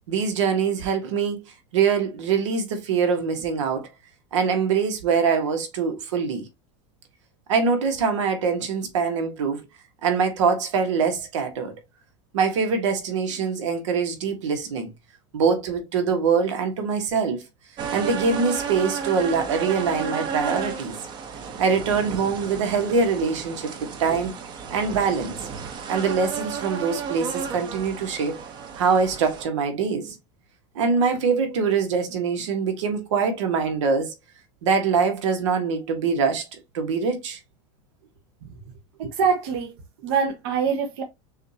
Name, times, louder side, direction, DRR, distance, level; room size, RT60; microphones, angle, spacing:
voice 1, 0.1-1.5 1.7-3.9 4.3-6.5 7.5-9.6 10.0-11.7 12.3-14.9 15.3-17.4 17.9-20.9 21.6-24.3 24.7-25.3 25.9-28.4 28.8-30.1 30.7-34.1 34.6-36.4 36.7-37.4, right 5 dB, 85° right, 1.5 m, -23 dB
sound 1, 17.8-29.5, right 6 dB, 30° right, 0.8 m, -33 dB
voice 2, 39.0-39.8 40.0-41.0, right 6 dB, 60° right, 1.0 m, -24 dB
6.3 x 2.6 x 2.8 m
supercardioid pair, 150°, 15 cm